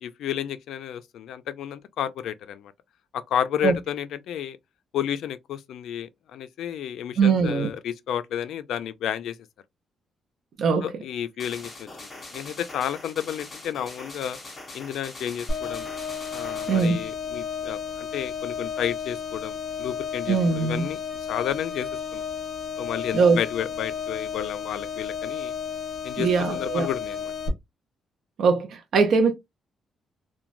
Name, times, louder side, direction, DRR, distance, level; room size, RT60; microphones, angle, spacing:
voice 1, 0.0-2.7 3.1-4.6 4.9-9.4 10.8-14.4 14.7-15.9 16.3-21.0 21.3-22.2 22.8-25.5 26.0-27.3, left 10 dB, 80° left, 0.3 m, -31 dB
voice 2, 7.2-7.7 10.6-10.9 16.7-17.0 20.3-20.9 23.1-23.4 26.2-26.9 28.4-29.3, right 5 dB, 55° right, 0.5 m, -21 dB
sound 1, 11.4-16.9, left 2 dB, 20° left, 0.8 m, -42 dB
sound 2, 15.5-27.5, left 7 dB, 50° left, 0.9 m, -33 dB
3.0 x 2.1 x 2.5 m
cardioid pair, 170°, 0 cm